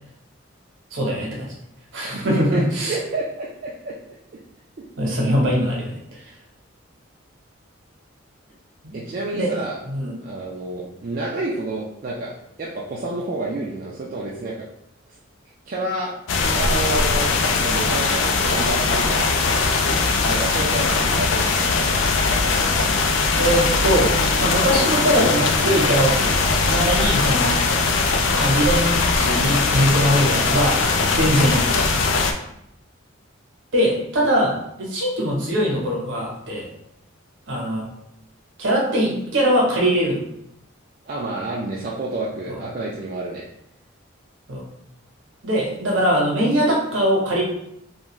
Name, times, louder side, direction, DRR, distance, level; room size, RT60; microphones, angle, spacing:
voice 1, 0.9-1.4 1.9-3.0 5.0-5.9 8.8-9.0 9.3-9.5 9.9-10.1 23.4-26.3 26.6-27.6 28.3-30.8 31.1-31.7 33.7-36.7 37.5-37.9 38.6-40.2 42.5-42.6 44.5-44.6 45.4-47.4, equal, 65° right, -3 dB, 0.9 m, -21 dB
voice 2, 2.0-3.9 8.9-9.8 10.2-12.3 12.6-14.6 15.7-16.1 16.5-19.3 20.2-22.1 31.1-31.3 41.1-43.4, right 2 dB, 45° right, -4 dB, 0.3 m, -29 dB
sound 1, 16.3-32.3, left 4 dB, 65° left, 0.3 m, -20 dB
2.5 x 2.3 x 3.0 m, 0.77 s
head